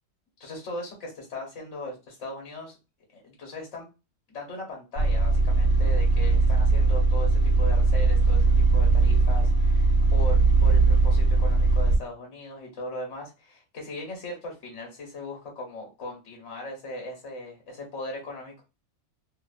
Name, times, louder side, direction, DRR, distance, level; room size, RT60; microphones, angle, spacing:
voice 1, 0.4-2.8 3.1-3.9 4.3-18.6, left 1 dB, 65° left, 0 dB, 1.1 m, -38 dB
sound 1, 5.0-12.0, right 3 dB, 85° left, 1.1 m, -20 dB
2.7 x 2.0 x 2.3 m, 0.29 s
omnidirectional pair, 1.2 m